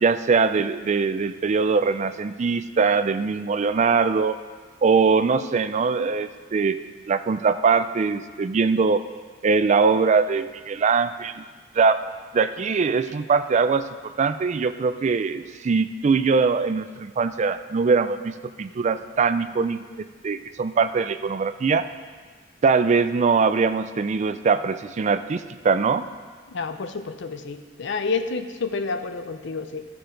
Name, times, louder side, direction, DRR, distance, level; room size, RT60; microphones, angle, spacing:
voice 1, 0.0-4.4 4.8-6.8 7.1-9.0 9.4-11.4 11.7-12.0 12.3-19.8 20.2-21.9 22.6-26.0, right 5 dB, 35° right, 11 dB, 0.4 m, -22 dB
voice 2, 26.5-29.9, left 4 dB, 65° left, 9 dB, 0.6 m, -29 dB
14.5 x 6.8 x 3.9 m, 1.5 s
head